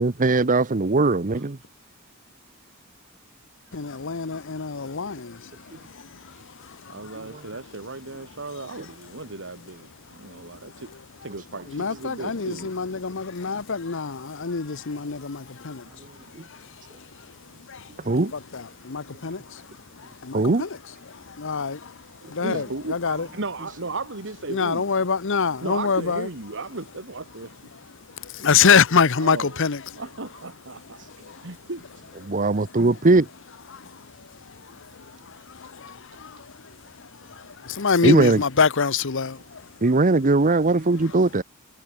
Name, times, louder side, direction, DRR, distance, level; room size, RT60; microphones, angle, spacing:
voice 1, 0.0-1.6 7.2-7.4 16.3-16.4 18.0-18.3 20.3-20.6 31.0-31.1 32.3-33.3 38.0-38.4 39.8-41.4, right 3 dB, 40° right, 0.8 m, -20 dB
voice 2, 3.7-5.2 11.7-15.4 15.6-15.8 18.5-18.6 18.9-19.4 20.3-20.7 21.4-21.8 22.4-23.3 24.5-26.3 28.4-29.8 37.8-39.3, left 5 dB, 60° left, 0.9 m, -23 dB
voice 3, 6.9-10.9 11.2-12.7 18.1-18.3 22.2-24.8 25.6-27.5 29.2-29.6 30.0-31.0 31.4-31.8 37.3-37.4, right 3 dB, 60° right, 2.2 m, -35 dB
head